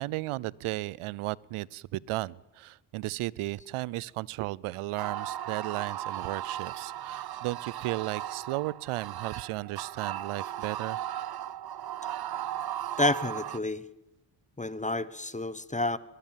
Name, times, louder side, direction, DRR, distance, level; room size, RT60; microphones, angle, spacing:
voice 1, 0.0-11.0, right 18 dB, 80° right, 24 dB, 0.7 m, -35 dB
sound 1, 5.0-13.6, right 11 dB, 50° right, 0.8 m, -36 dB
voice 2, 13.0-13.9 14.6-16.0, left 2 dB, 15° left, 16 dB, 1.2 m, -29 dB
22.5 x 21.5 x 7.5 m, 0.97 s
supercardioid pair, 70°, 49 cm